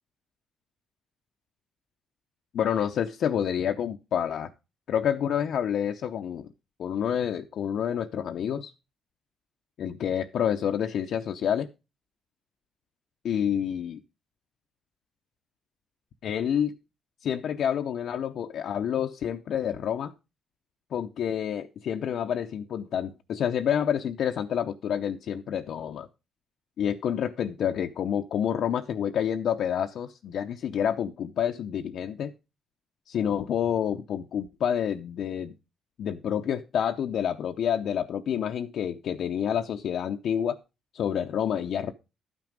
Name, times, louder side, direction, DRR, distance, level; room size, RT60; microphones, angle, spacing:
voice 1, 2.5-4.5 4.9-6.5 6.8-8.7 9.8-11.7 13.2-14.0 16.2-16.7 17.2-20.1 20.9-26.1 26.8-32.3 33.1-35.6 36.0-40.6 40.9-41.9, left 9 dB, 70° left, 0.7 m, -28 dB
12.0 x 6.1 x 5.2 m
cardioid pair, 90°, 0 cm